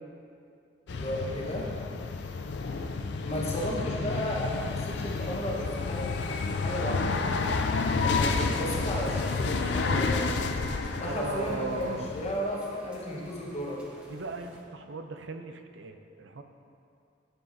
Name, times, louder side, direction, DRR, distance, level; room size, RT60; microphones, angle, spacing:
sound 1, 0.9-12.3, left 4 dB, 60° left, 0.4 m, -30 dB
voice 1, 0.9-1.7 3.2-7.2 7.9-10.3 10.9-13.8, equal, 30° left, -4 dB, 1.1 m, -34 dB
sound 2, 8.1-14.6, equal, 5° right, 0.7 m, -49 dB
voice 2, 11.0-12.1 14.1-16.4, right 3 dB, 65° right, 7 dB, 0.5 m, -38 dB
10.5 x 7.1 x 2.7 m, 2.4 s
head